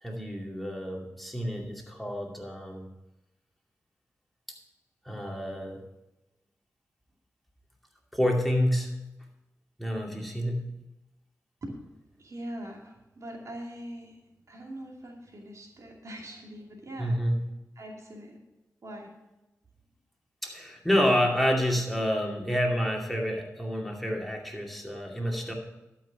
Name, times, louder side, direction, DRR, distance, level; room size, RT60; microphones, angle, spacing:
voice 1, 0.0-2.9 5.0-5.8 8.1-8.9 9.8-10.7 17.0-17.4 20.4-25.5, equal, ahead, 0 dB, 2.5 m, -28 dB
voice 2, 12.2-14.2 14.5-17.2 17.8-18.4 18.8-19.1, right 1 dB, 60° right, 0 dB, 2.4 m, -42 dB
12.0 x 5.8 x 6.0 m, 0.97 s
cardioid pair, 45°, 6 cm